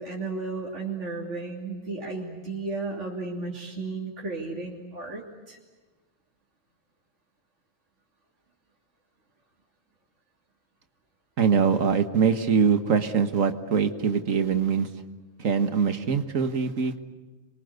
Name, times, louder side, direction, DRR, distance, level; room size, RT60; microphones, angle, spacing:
voice 1, 0.0-5.6, right 3 dB, 65° right, -2 dB, 3.4 m, -34 dB
voice 2, 11.4-14.9 15.4-17.0, right 6 dB, 85° right, 9 dB, 1.8 m, -23 dB
27.0 x 23.5 x 8.2 m, 1.3 s
omnidirectional pair, 1.3 m